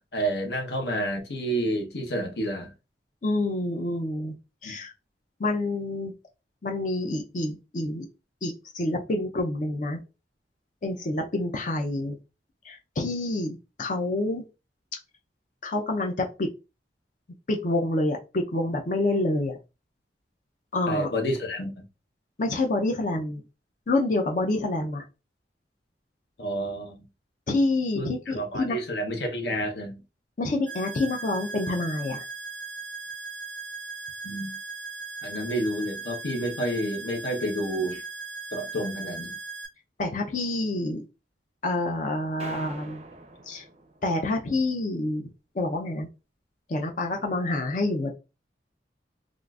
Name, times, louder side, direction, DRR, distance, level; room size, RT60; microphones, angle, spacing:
voice 1, 0.1-2.7 4.6-4.8 20.9-21.8 26.4-27.0 27.9-30.0 34.2-34.6 35.2-38.0 38.5-39.4, right 1 dB, 70° left, 0.9 m, -29 dB
voice 2, 3.2-4.3 4.6-4.9 5.4-6.1 6.6-8.0 8.4-10.0 10.8-12.2 12.7-14.4 15.6-16.5 17.5-19.6 20.7-21.1 22.4-23.4 23.9-25.0 27.5-28.8 30.4-32.2 40.0-41.0 41.6-43.0 43.5-43.6 44.0-45.3 45.6-46.1 46.7-48.1, left 2 dB, 45° left, 0.5 m, -27 dB
sound 1, 30.7-39.7, right 4 dB, 10° left, 0.8 m, -38 dB
sound 2, 42.4-44.4, right 2 dB, 35° right, 0.5 m, -44 dB
3.6 x 2.5 x 2.3 m
head